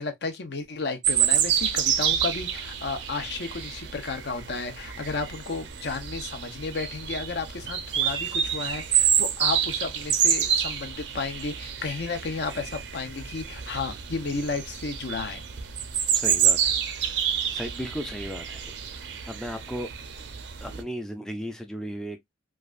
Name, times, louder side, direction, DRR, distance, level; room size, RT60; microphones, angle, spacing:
voice 1, 0.0-15.5, left 4 dB, 65° left, 0.7 m, -33 dB
sound 1, 1.0-20.8, right 8 dB, 70° right, 0.5 m, -28 dB
voice 2, 16.1-17.2 17.5-18.6 18.9-19.9 20.6-22.2, equal, 5° left, 0.3 m, -36 dB
3.2 x 2.4 x 2.4 m
head